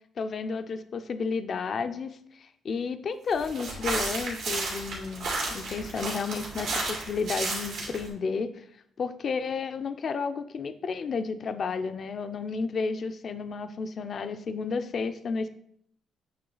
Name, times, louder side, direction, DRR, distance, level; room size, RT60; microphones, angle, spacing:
voice 1, 0.2-8.6 9.0-15.5, left 5 dB, 50° left, 9 dB, 0.4 m, -32 dB
sound 1, 3.4-8.1, right 3 dB, 90° right, 2.4 m, -33 dB
8.6 x 3.2 x 3.9 m, 0.68 s
cardioid pair, 90°, 0 cm